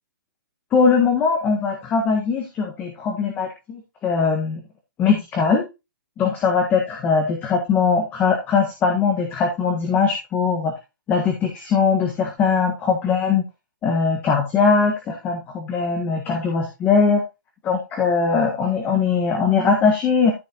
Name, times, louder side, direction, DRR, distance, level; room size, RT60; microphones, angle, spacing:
voice 1, 0.7-4.6 5.0-5.7 6.2-10.7 11.1-13.4 13.8-17.2 17.6-20.3, left 5 dB, 15° left, 2 dB, 1.5 m, -20 dB
13.5 x 5.4 x 2.9 m, 0.26 s
hypercardioid pair, 155°, 11 cm